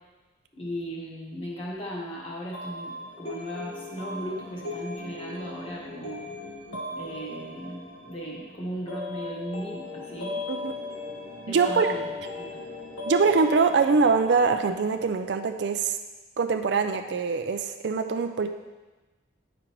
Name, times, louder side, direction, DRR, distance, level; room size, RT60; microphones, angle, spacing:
voice 1, 0.6-6.3 6.9-10.3 11.5-12.1 12.4-12.6, equal, 30° left, -4 dB, 1.3 m, -37 dB
sound 1, 2.5-15.1, left 2 dB, 85° left, 1.7 m, -38 dB
voice 2, 11.5-11.9 13.1-16.0 16.4-18.5, right 4 dB, 55° right, 6 dB, 0.4 m, -23 dB
10.0 x 5.1 x 3.0 m, 1.2 s
head